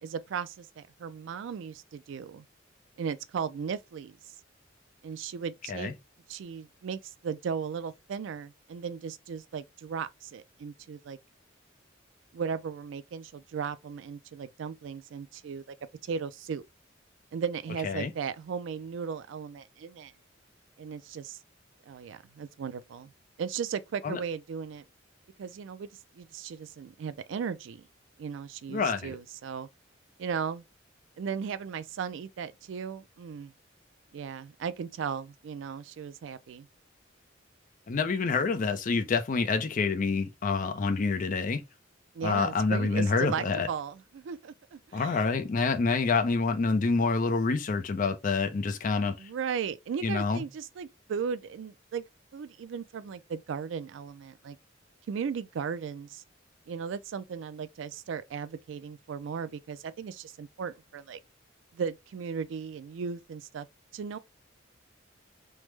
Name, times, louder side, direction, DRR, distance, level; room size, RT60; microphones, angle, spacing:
voice 1, 0.0-2.4 3.0-4.2 5.0-5.9 6.3-11.2 12.3-15.6 16.0-16.6 17.3-20.1 20.8-21.4 21.9-23.1 23.4-24.8 25.4-25.9 26.1-27.8 28.2-29.7 30.2-30.6 31.2-33.5 34.1-36.7 42.1-45.4 49.2-52.0 52.3-54.6 55.1-56.2 56.7-61.2 61.7-63.7 63.9-64.2, right 6 dB, 70° right, 0.3 m, -36 dB
voice 2, 28.7-29.2 37.9-41.6 42.2-43.7 44.9-49.2 50.0-50.4, left 4 dB, 40° left, 0.4 m, -27 dB
3.2 x 2.0 x 3.1 m
head